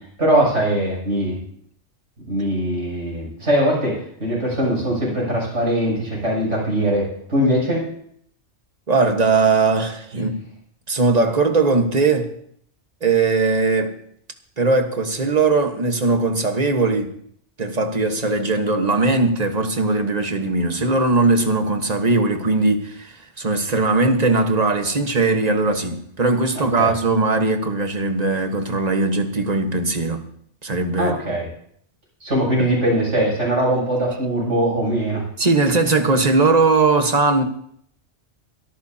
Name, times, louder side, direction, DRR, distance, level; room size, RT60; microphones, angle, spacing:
voice 1, 0.2-1.4 2.3-7.8 10.1-10.3 26.5-26.9 30.9-31.5 32.2-35.2, right 1 dB, 85° right, 7.9 m, -21 dB
voice 2, 8.9-10.4 10.9-12.3 13.0-14.0 14.6-17.1 17.6-30.2 30.6-31.3 32.6-32.7 35.4-37.4, right 3 dB, 35° right, 1.4 m, -19 dB
23.0 x 13.5 x 2.8 m
omnidirectional pair, 1.2 m